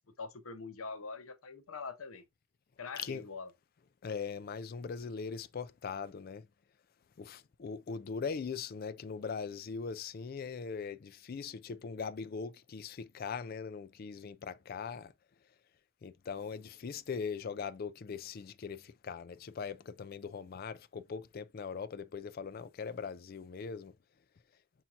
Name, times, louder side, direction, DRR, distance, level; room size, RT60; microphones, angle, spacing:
voice 1, 0.2-2.2 2.8-3.5, left 4 dB, 85° left, 0.7 m, -43 dB
voice 2, 4.0-6.5 7.2-15.1 16.0-23.9, left 5 dB, 45° left, 0.3 m, -40 dB
5.6 x 2.8 x 2.4 m
head